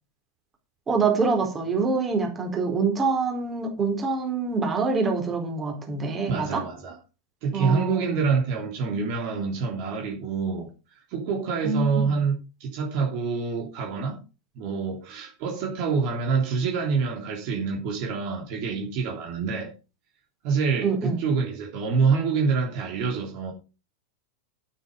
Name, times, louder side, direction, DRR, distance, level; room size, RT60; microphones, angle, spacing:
voice 1, 0.9-6.6 7.5-8.1 11.6-12.1 20.8-21.2, right 4 dB, 20° right, 4.3 m, -25 dB
voice 2, 6.3-7.0 7.4-10.7 11.1-14.2 14.5-19.7 20.4-23.5, right 5 dB, 45° right, 3.3 m, -26 dB
10.5 x 8.9 x 5.2 m
figure-of-eight pair, 90°, 0 cm